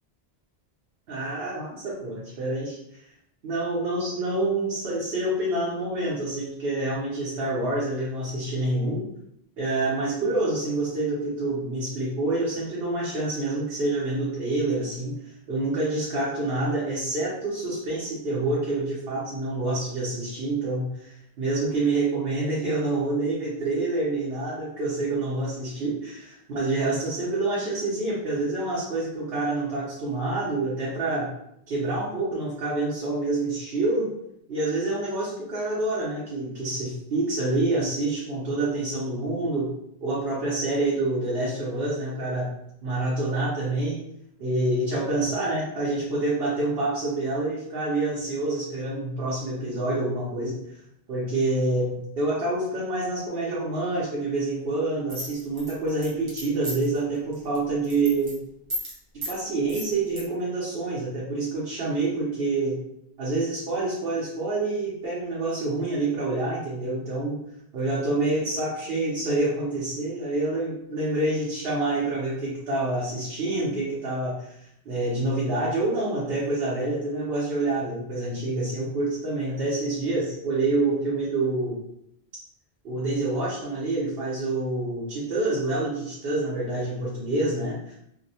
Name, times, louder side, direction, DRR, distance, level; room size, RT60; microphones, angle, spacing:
voice 1, 1.1-2.8 3.4-9.0 9.6-15.1 15.5-31.3 31.7-34.1 34.5-39.7 40.0-42.5 42.8-44.0 44.4-50.6 51.1-58.4 59.3-62.8 63.2-67.4 67.7-74.5 74.8-81.8 82.8-87.9, right 2 dB, 70° right, -7 dB, 0.9 m, -27 dB
sound 1, 55.1-57.0 57.3-57.6 57.8-58.3 58.7-58.9 59.2-59.4 59.7-60.2, equal, 35° right, 0.7 m, -33 dB
2.7 x 2.0 x 2.7 m, 0.76 s
omnidirectional pair, 1.1 m